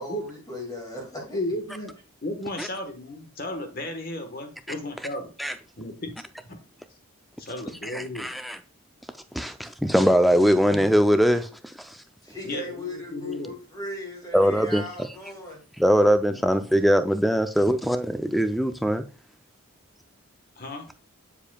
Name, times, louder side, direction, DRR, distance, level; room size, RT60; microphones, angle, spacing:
voice 1, 0.0-1.4 12.2-15.7, left 1 dB, 15° left, 2.1 m, -37 dB
voice 2, 1.3-1.9 2.2-5.3 5.8-6.1 6.5-6.6 7.4-8.3 12.4-13.5 16.3-16.4 20.6-20.9, left 1 dB, 45° left, 1.2 m, -34 dB
voice 3, 7.8-8.6 9.3-12.0 14.3-14.8 15.8-19.0, equal, ahead, 0.3 m, -21 dB
7.3 x 6.9 x 2.3 m
head